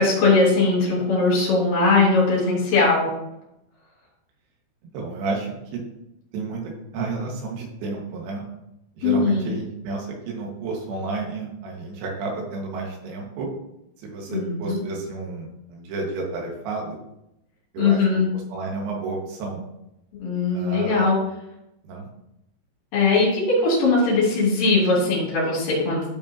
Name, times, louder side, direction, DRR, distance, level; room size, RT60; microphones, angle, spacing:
voice 1, 0.0-3.1 9.0-9.5 14.3-14.8 17.8-18.3 20.1-21.1 22.9-26.1, left 3 dB, 50° left, -7 dB, 4.5 m, -20 dB
voice 2, 4.9-5.8 6.3-8.4 9.0-13.5 14.0-17.0 17.7-19.6 20.5-21.1 21.8-22.1, right 3 dB, 85° right, -1 dB, 4.6 m, -31 dB
13.0 x 5.3 x 2.9 m, 0.85 s
omnidirectional pair, 6.0 m